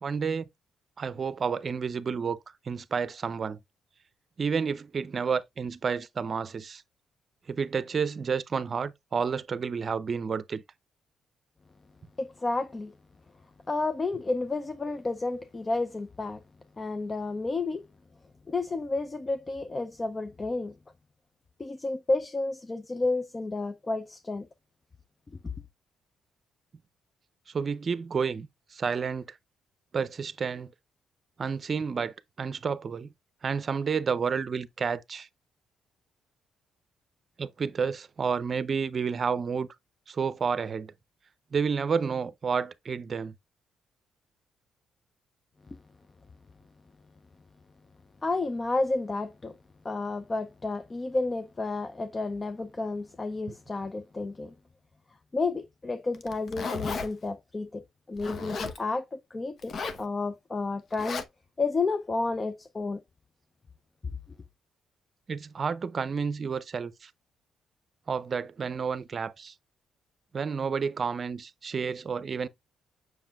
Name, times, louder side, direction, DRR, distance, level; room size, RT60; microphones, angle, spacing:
voice 1, 0.0-0.4 1.0-2.4 2.7-3.6 4.4-6.8 7.5-10.6 27.5-29.3 29.9-30.7 31.4-33.1 33.4-35.3 37.4-39.7 40.1-40.9 41.5-43.3 53.5-53.6 65.3-67.1 68.1-69.5 70.3-72.5, right 6 dB, 45° right, 0.6 m, -30 dB
voice 2, 12.2-12.9 13.7-16.4 16.8-17.9 18.5-20.7 21.6-24.5 48.2-49.6 49.8-54.5 55.3-57.8 58.1-59.7 60.0-61.2 61.6-63.0, left 3 dB, 25° left, 0.6 m, -31 dB
Zipper (clothing), 56.1-57.1 58.2-58.8 59.6-60.0 60.9-61.2, left 4 dB, 55° left, 0.9 m, -34 dB
7.2 x 6.3 x 2.4 m
cardioid pair, 90°, 0 cm